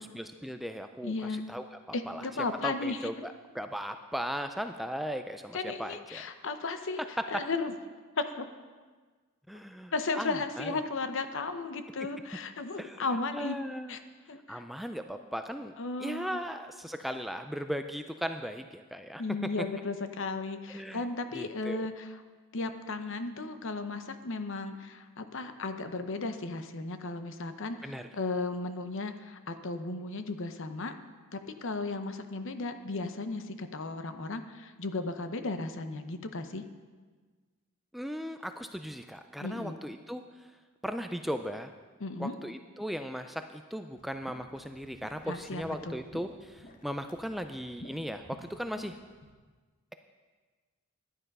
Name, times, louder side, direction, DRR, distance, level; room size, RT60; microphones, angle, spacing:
voice 1, 0.0-1.1 1.5-1.8 2.1-2.3 2.6-6.2 9.5-10.8 12.8-13.1 13.3-13.9 14.5-15.7 16.0-19.5 20.7-21.1 21.3-21.9 27.8-28.1 37.9-40.5 40.8-41.7 42.2-49.0, equal, ahead, 7 dB, 0.3 m, -37 dB
voice 2, 1.0-1.4 1.9-3.1 5.5-7.0 7.3-7.7 8.2-8.5 9.9-13.6 13.9-14.0 14.3-14.6 15.8-16.4 19.2-22.2 22.5-31.0 31.3-36.6 39.4-39.7 42.0-42.3 45.3-46.0, left 3 dB, 60° left, 9 dB, 0.8 m, -35 dB
sound 1, 44.0-49.3, left 1 dB, 40° left, 1.1 m, -52 dB
11.0 x 10.0 x 5.4 m, 1.4 s
head